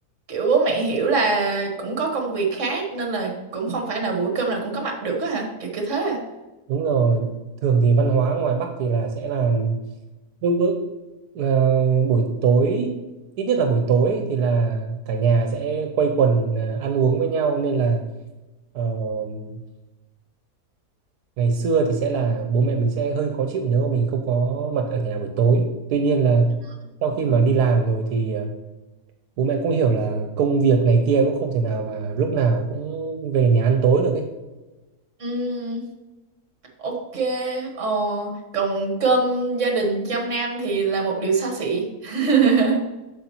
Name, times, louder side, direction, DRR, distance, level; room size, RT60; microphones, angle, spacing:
voice 1, 0.3-6.2 27.2-27.3 35.2-35.8 36.8-42.8, right 4 dB, 50° right, 1 dB, 1.8 m, -23 dB
voice 2, 6.7-7.4 7.6-9.8 10.4-10.8 11.3-13.0 13.4-18.0 18.7-19.6 21.4-26.6 27.0-28.5 29.4-34.3, right 5 dB, 85° right, 5 dB, 1.3 m, -21 dB
7.9 x 6.7 x 2.9 m, 1.1 s
omnidirectional pair, 1.7 m